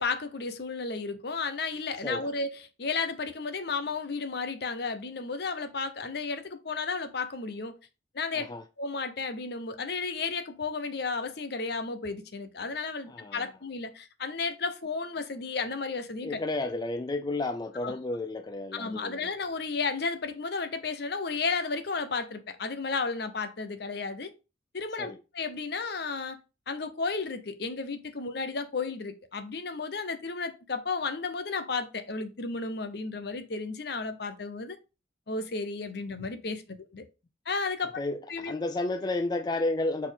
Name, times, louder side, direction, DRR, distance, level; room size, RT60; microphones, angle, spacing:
voice 1, 0.0-7.7 8.1-8.5 8.8-16.4 17.8-17.9 18.7-24.3 24.7-26.4 26.7-34.8 35.3-37.0 37.5-37.9 38.3-38.5, left 4 dB, 65° left, 0.9 m, -33 dB
voice 2, 13.1-13.5 16.2-19.3 25.0-25.2 38.0-40.1, left 2 dB, 25° left, 0.3 m, -32 dB
4.3 x 4.2 x 5.1 m
head